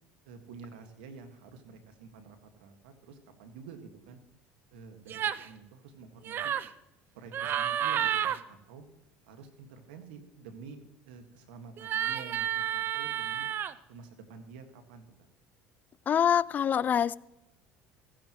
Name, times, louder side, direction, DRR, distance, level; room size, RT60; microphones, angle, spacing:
voice 1, 0.3-4.2 4.7-6.5 7.1-8.8 9.3-10.8 11.0-13.5 13.9-15.0, right 5 dB, 90° right, 1.8 m, -49 dB
sound 1, 5.1-5.5 6.2-6.7 7.3-8.4 11.8-13.7, right 10 dB, 45° right, 0.6 m, -31 dB
voice 2, 16.1-17.2, left 8 dB, 35° left, 0.4 m, -25 dB
15.5 x 15.0 x 3.1 m
supercardioid pair, 95°, 5 cm